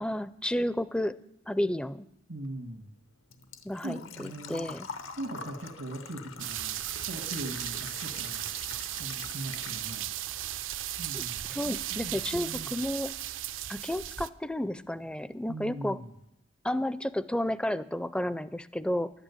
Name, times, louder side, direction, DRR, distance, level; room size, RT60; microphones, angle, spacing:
voice 1, 0.0-1.2 1.5-2.1 3.6-4.9 11.1-11.2 11.5-13.1 13.7-16.0 16.6-19.1, left 1 dB, 5° left, 15 dB, 0.4 m, -31 dB
voice 2, 2.3-2.9 3.8-4.8 5.2-6.8 7.1-8.5 9.0-10.1 11.0-12.8 15.5-16.1, right 1 dB, 90° right, 1 dB, 1.9 m, -40 dB
Engine / Trickle dribble / Fill (with liquid), 2.4-10.3 10.6-11.6 11.9-12.0 13.9-14.0 14.2-14.5 14.9-15.0 15.2-15.3, left 5 dB, 85° left, 1.0 m, -46 dB
sound 1, 6.4-14.3, right 13 dB, 70° right, 0.5 m, -36 dB
11.5 x 8.9 x 8.4 m, 0.82 s
head